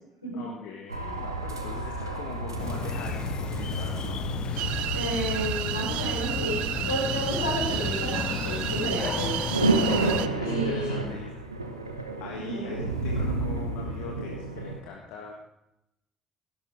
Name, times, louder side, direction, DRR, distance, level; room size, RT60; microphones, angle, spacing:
voice 1, 0.3-4.2 10.0-11.3 12.2-15.3, left 6 dB, 60° left, 0 dB, 1.6 m, -42 dB
sound 1, 0.9-14.8, right 2 dB, 90° right, 0.9 m, -31 dB
sound 2, 2.6-10.3, left 8 dB, 45° left, 0.4 m, -34 dB
sound 3, 4.6-10.3, right 14 dB, 60° right, 0.5 m, -32 dB
voice 2, 4.9-9.4 10.4-11.0 12.3-12.8, equal, 85° left, -4 dB, 4.8 m, -31 dB
17.0 x 11.5 x 3.7 m, 0.85 s
figure-of-eight pair, 50°, 2 cm